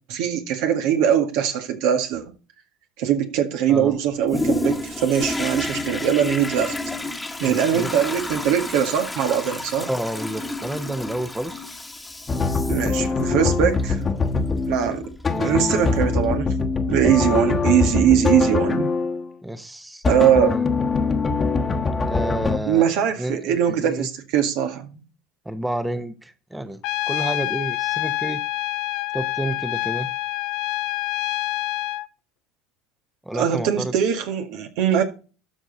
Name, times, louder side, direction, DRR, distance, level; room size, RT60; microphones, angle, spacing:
voice 1, 0.1-2.2 3.0-6.7 7.4-9.9 12.7-14.0 14.7-15.1 15.4-16.5 16.9-18.9 20.1-20.6 22.7-25.0 33.3-35.0, right 9 dB, 70° right, 1.9 m, -21 dB
Toilet flush, 4.3-16.7 17.2-17.3, left 2 dB, 10° left, 1.5 m, -31 dB
voice 2, 7.4-8.2 9.8-11.7 15.3-15.8 17.3-17.4 19.4-20.0 20.4-20.7 22.1-22.9 23.2-24.1 25.4-26.8 27.1-28.4 29.1-30.1 33.2-33.9, right 1 dB, 5° right, 1.1 m, -30 dB
sound 1, 12.3-19.3 20.0-22.6, left 4 dB, 25° left, 1.4 m, -23 dB
Trumpet, 26.8-32.1, left 17 dB, 65° left, 0.4 m, -27 dB
12.5 x 5.4 x 4.1 m
supercardioid pair, 90°, 0 cm